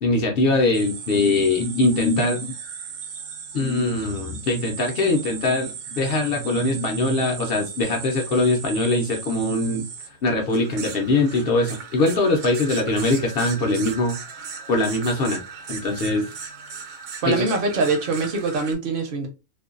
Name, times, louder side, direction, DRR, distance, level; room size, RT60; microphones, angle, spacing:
voice 1, 0.0-2.5 3.5-9.8 10.2-14.2 14.7-15.4 15.7-16.3 17.2-17.4, left 2 dB, 60° left, 0.7 m, -22 dB
sound 1, 0.7-18.8, right 6 dB, 75° right, 0.9 m, -37 dB
voice 2, 17.2-19.3, right 3 dB, 55° right, 0.7 m, -23 dB
2.5 x 2.2 x 2.4 m
omnidirectional pair, 1.3 m